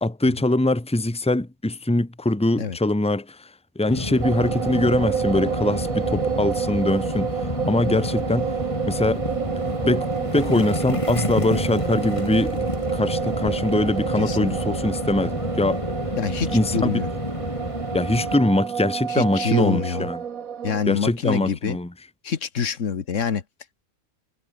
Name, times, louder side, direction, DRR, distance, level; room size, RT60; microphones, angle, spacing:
voice 1, 0.0-3.5 3.7-8.5 8.9-9.2 9.8-12.6 12.9-15.8 16.5-16.8 17.9-20.2 20.9-21.9, left 2 dB, 5° left, 1.4 m, -23 dB
sound 1, 3.9-18.4, left 1 dB, 20° left, 3.4 m, -29 dB
sound 2, 4.2-20.8, right 7 dB, 70° right, 1.7 m, -29 dB
voice 2, 14.2-14.6 16.2-17.1 19.1-20.1 20.6-21.8 22.2-23.4, left 6 dB, 60° left, 1.7 m, -26 dB
omnidirectional pair, 1.5 m